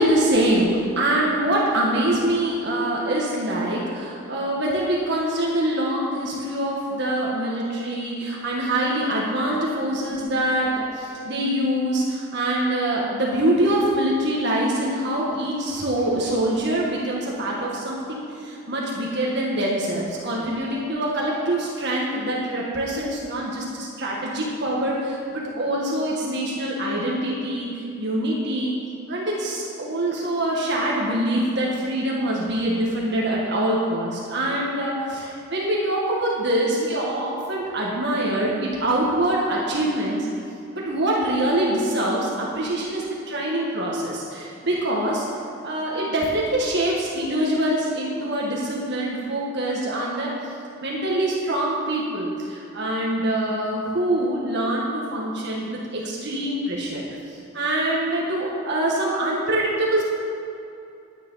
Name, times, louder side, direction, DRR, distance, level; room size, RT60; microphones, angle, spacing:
voice 1, 0.0-28.8 29.1-40.3 40.7-45.3 45.6-50.4 50.8-57.0 57.3-60.0, right 1 dB, 60° right, -4 dB, 1.7 m, -24 dB
11.0 x 9.7 x 5.7 m, 2.6 s
head